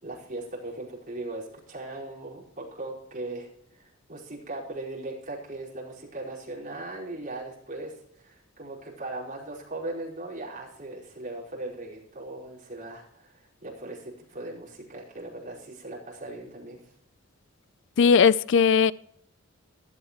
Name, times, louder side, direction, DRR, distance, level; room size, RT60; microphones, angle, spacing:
voice 1, 0.0-16.8, right 2 dB, 40° right, 5.0 m, -39 dB
voice 2, 18.0-18.9, left 6 dB, 65° left, 0.4 m, -18 dB
16.0 x 12.0 x 3.2 m
head